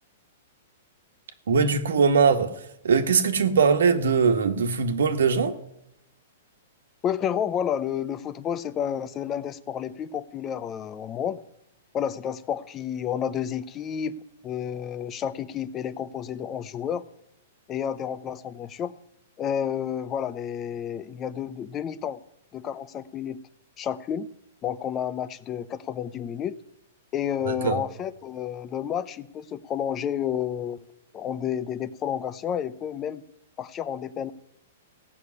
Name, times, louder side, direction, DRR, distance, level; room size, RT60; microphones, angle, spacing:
voice 1, 1.5-2.5 2.8-5.5 27.4-27.8, right 5 dB, 90° right, 1.6 m, -21 dB
voice 2, 7.0-11.4 11.9-14.1 14.4-17.0 17.7-18.9 19.4-22.2 22.5-23.4 23.8-24.3 24.6-26.6 27.1-30.8 31.1-33.2 33.6-34.3, left 9 dB, 20° left, 0.6 m, -30 dB
16.0 x 6.5 x 9.6 m
hypercardioid pair, 160°, 0 cm